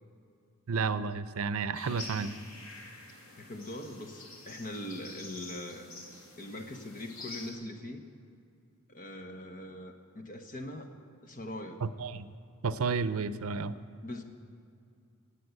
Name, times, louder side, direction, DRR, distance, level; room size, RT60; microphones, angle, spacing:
voice 1, 0.7-2.3 11.8-12.3 12.6-13.8, right 5 dB, 80° right, 14 dB, 0.5 m, -31 dB
sound 1, 1.7-7.5, left 2 dB, 70° left, 2.8 m, -47 dB
voice 2, 3.4-6.0 6.4-8.0 8.9-10.9 11.2-11.8 14.0-14.2, left 1 dB, 40° left, 5 dB, 1.3 m, -41 dB
17.5 x 8.4 x 8.1 m, 2.4 s
head